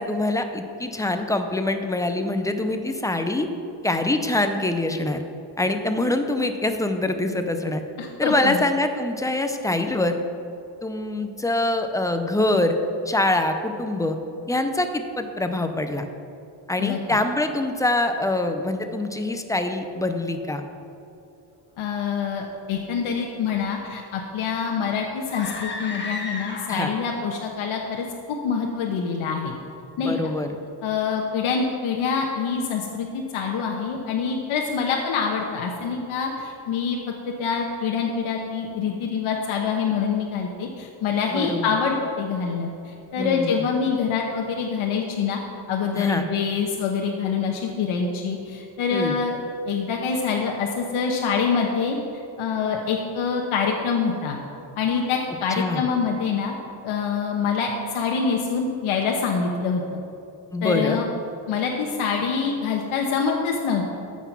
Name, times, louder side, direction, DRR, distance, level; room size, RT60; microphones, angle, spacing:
voice 1, 0.0-3.5 3.8-5.2 5.6-7.8 8.2-10.2 10.8-12.7 13.1-14.2 14.5-16.0 16.7-20.6 26.7-26.9 30.0-30.5 41.3-41.7 43.2-43.6 46.0-46.3 48.9-49.2 55.6-55.8 60.5-61.0, left 2 dB, 5° left, 6 dB, 0.5 m, -24 dB
voice 2, 8.0-8.6 16.8-17.2 21.8-29.5 30.0-30.3 30.8-37.0 37.4-45.4 45.7-49.4 49.6-54.4 54.8-56.6 56.8-60.0 60.6-61.1 61.5-64.0, left 5 dB, 90° left, 0 dB, 1.2 m, -25 dB
sound 1, 25.3-27.0, left 3 dB, 25° left, 1.3 m, -33 dB
14.0 x 6.0 x 6.0 m, 2.8 s
cardioid pair, 165°, 47 cm